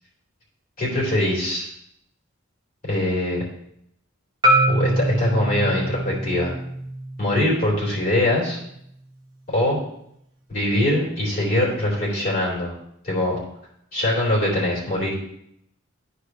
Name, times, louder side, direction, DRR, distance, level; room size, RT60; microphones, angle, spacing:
voice 1, 0.8-1.7 2.9-3.4 4.7-6.5 7.2-8.6 9.5-9.8 10.5-12.7 13.0-13.4 13.9-15.1, left 1 dB, 45° left, -5 dB, 3.7 m, -22 dB
Marimba xylophone, 4.4-8.6, right 1 dB, 20° right, 1.3 m, -24 dB
13.0 x 4.9 x 3.2 m, 0.73 s
head